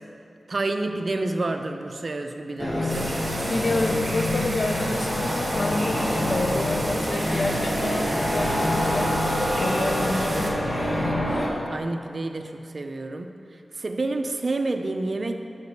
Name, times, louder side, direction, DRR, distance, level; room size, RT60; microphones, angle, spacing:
voice 1, 0.5-3.1 11.7-15.3, right 2 dB, 50° right, 6 dB, 0.5 m, -29 dB
sound 1, 2.6-11.5, left 1 dB, 30° left, 1.3 m, -26 dB
sound 2, 2.9-10.5, right 1 dB, 25° right, 1.6 m, -33 dB
voice 2, 3.5-10.5, left 2 dB, 60° left, 6 dB, 0.5 m, -29 dB
6.7 x 5.2 x 6.7 m, 2.6 s
wide cardioid pair, 105°, 0 cm